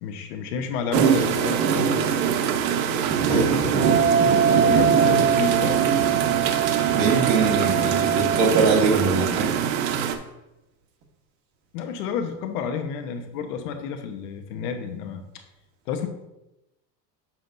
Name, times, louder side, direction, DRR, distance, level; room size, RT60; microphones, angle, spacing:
voice 1, 0.0-2.1 3.3-6.0 11.7-15.4 15.9-16.1, left 6 dB, 65° left, 6 dB, 1.1 m, -31 dB
sound 1, 0.9-10.2, right 7 dB, 85° right, 1.0 m, -23 dB
Wind instrument woodwind instrument, 3.8-8.5, right 7 dB, 60° right, 2.4 m, -23 dB
voice 2, 6.9-9.5, right 4 dB, 40° right, 0 dB, 1.7 m, -22 dB
7.6 x 7.2 x 2.6 m, 0.93 s
supercardioid pair, 140°, 49 cm